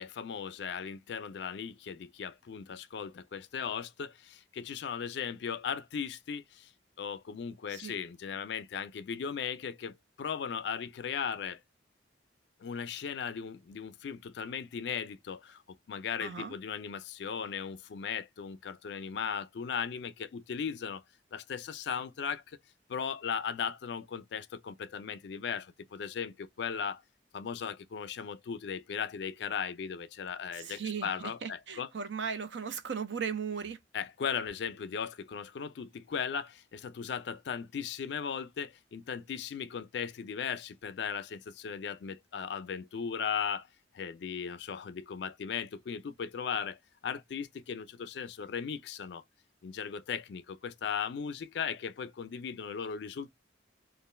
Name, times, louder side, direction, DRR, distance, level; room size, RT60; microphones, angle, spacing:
voice 1, 0.0-6.7 7.0-11.6 12.6-21.0 21.3-22.6 22.9-27.0 27.3-31.9 33.9-43.7 43.9-49.2 49.6-53.3, left 7 dB, 60° left, 0.4 m, -37 dB
voice 2, 16.2-16.6 30.5-33.8, right 6 dB, 65° right, 0.5 m, -37 dB
2.4 x 2.2 x 3.0 m
head